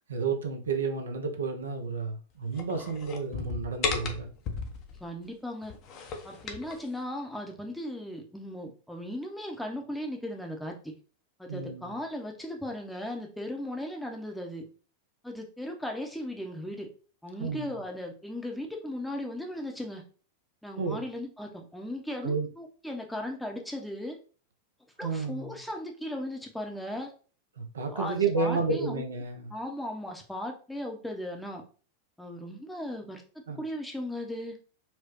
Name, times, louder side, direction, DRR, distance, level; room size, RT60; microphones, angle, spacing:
voice 1, 0.1-4.3 11.5-11.9 17.4-17.7 20.8-21.0 22.2-22.5 25.0-25.6 27.6-29.6 33.5-33.6, right 4 dB, 70° right, 0.6 m, -31 dB
sound 1, 2.5-5.0 5.6-6.8, left 5 dB, 40° left, 0.7 m, -35 dB
voice 2, 5.0-5.7 6.2-10.9 11.4-14.7 15.2-16.9 17.2-20.0 20.6-24.2 25.0-27.1 27.9-29.0 29.5-31.6 32.2-33.2 33.6-34.6, left 1 dB, 5° left, 0.7 m, -37 dB
4.2 x 2.2 x 3.0 m
figure-of-eight pair, 90°, 0 cm